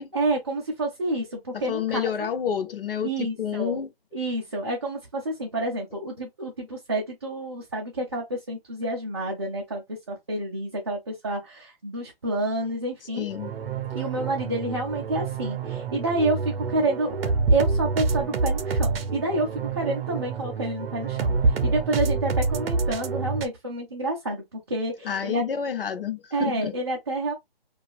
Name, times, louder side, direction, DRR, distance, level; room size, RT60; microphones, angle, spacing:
voice 1, 0.1-2.3 3.0-3.8 4.1-13.3 13.9-25.4 26.3-27.3, right 2 dB, 25° right, 0.4 m, -29 dB
voice 2, 1.5-3.9 13.1-13.5 25.0-26.7, left 8 dB, 65° left, 0.6 m, -29 dB
sound 1, 13.3-23.5, right 4 dB, 70° right, 0.6 m, -27 dB
2.7 x 2.3 x 2.3 m
hypercardioid pair, 160°, 30 cm